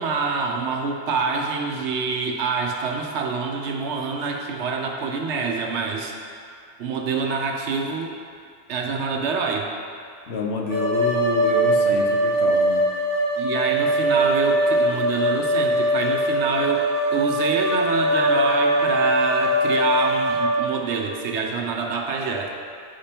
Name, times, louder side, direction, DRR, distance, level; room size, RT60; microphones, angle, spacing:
voice 1, 0.0-8.1 8.7-9.7 13.4-22.5, right 4 dB, 85° right, 2 dB, 1.0 m, -26 dB
voice 2, 10.3-12.8, left 4 dB, 70° left, 1 dB, 1.0 m, -28 dB
sound 1, 10.7-20.5, right 1 dB, 5° right, 1.4 m, -21 dB
9.3 x 5.1 x 2.9 m, 2.3 s
omnidirectional pair, 1.1 m